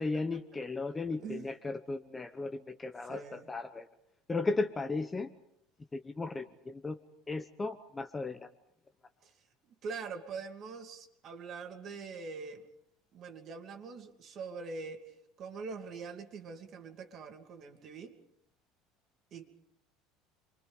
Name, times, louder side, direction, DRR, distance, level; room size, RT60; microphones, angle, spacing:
voice 1, 0.0-3.9 4.3-5.3 5.9-7.0 7.3-8.5, left 3 dB, 10° left, 8 dB, 0.9 m, -35 dB
voice 2, 3.0-3.5 9.2-9.3 9.8-12.7 13.1-18.2 19.3-19.5, right 4 dB, 35° right, 5 dB, 2.7 m, -43 dB
29.5 x 24.0 x 5.3 m, 0.75 s
cardioid pair, 165°, 0 cm